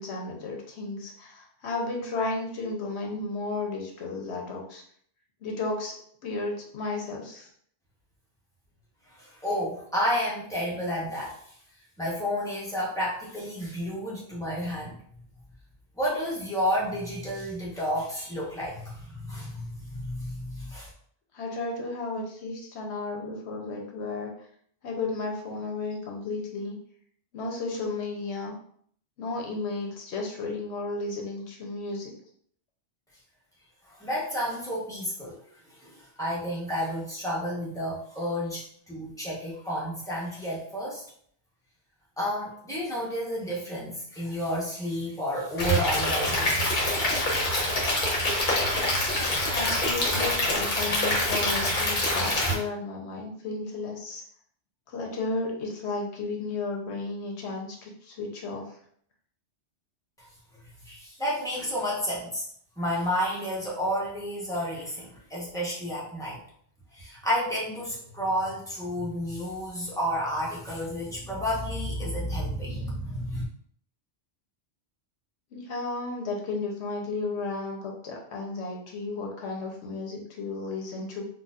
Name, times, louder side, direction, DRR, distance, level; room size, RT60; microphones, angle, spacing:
voice 1, 0.0-4.8 5.4-5.9 6.2-7.5 21.3-24.3 24.8-26.8 27.3-28.5 29.2-32.1 49.5-54.2 54.9-58.7 75.5-81.2, left 3 dB, 70° left, 0 dB, 1.0 m, -33 dB
voice 2, 9.1-11.4 12.0-15.0 15.9-20.9 33.8-35.4 35.7-41.0 42.2-47.5 60.2-60.3 60.8-62.4 62.8-66.4 66.9-73.4, equal, 5° left, -6 dB, 1.0 m, -31 dB
Stream / Liquid, 45.6-52.5, left 1 dB, 45° left, 1.0 m, -25 dB
4.1 x 2.5 x 2.5 m, 0.62 s
omnidirectional pair, 1.2 m